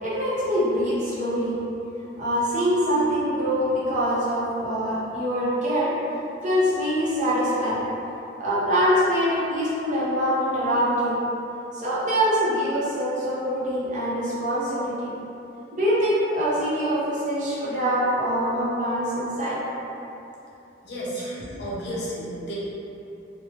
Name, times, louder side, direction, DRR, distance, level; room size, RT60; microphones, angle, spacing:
voice 1, 0.0-1.6 2.2-5.9 6.4-7.8 8.4-11.2 11.7-15.1 15.7-19.6, equal, 45° right, -9 dB, 0.7 m, -24 dB
voice 2, 20.8-21.3 21.6-22.6, equal, 65° left, -6 dB, 0.6 m, -32 dB
3.0 x 2.1 x 2.8 m, 2.9 s
head